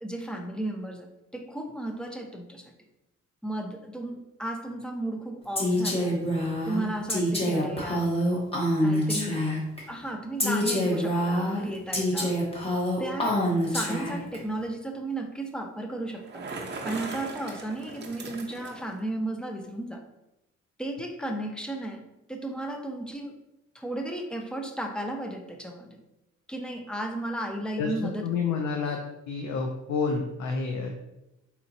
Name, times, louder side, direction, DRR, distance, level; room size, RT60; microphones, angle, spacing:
voice 1, 0.0-2.7 3.4-6.2 6.6-8.1 8.8-9.5 9.9-12.4 13.0-13.4 13.7-16.5 16.8-20.0 20.8-23.3 23.7-26.0 26.5-28.3, right 1 dB, 5° left, 3 dB, 0.4 m, -34 dB
Female speech woman speaking, 5.5-9.8 10.4-14.4, equal, 20° left, 1.0 m, -26 dB
Bicycle, 16.1-19.0, right 3 dB, 35° right, 0.7 m, -39 dB
voice 2, 27.8-29.0 29.3-30.9, left 5 dB, 65° left, 3 dB, 0.5 m, -29 dB
4.1 x 2.8 x 2.7 m, 0.92 s
cardioid pair, 90°, 30 cm